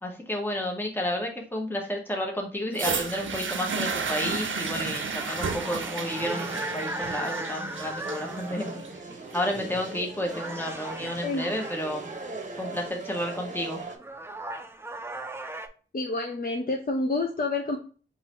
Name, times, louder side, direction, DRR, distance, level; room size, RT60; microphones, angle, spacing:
voice 1, 0.0-12.1 12.6-13.8, left 1 dB, 10° left, 1 dB, 1.0 m, -31 dB
sound 1, 2.7-10.7 11.5-11.6, right 5 dB, 85° right, 0.5 m, -33 dB
sound 2, 3.3-8.8 9.7-10.0 10.3-12.1 13.5-13.6 13.9-15.7, right 2 dB, 10° right, 0.5 m, -38 dB
sound 3, 3.8-14.0, right 2 dB, 40° right, 0.8 m, -40 dB
voice 2, 15.9-17.8, left 2 dB, 50° left, 1 dB, 0.6 m, -28 dB
3.9 x 2.6 x 4.1 m, 0.38 s
wide cardioid pair, 60°, 19 cm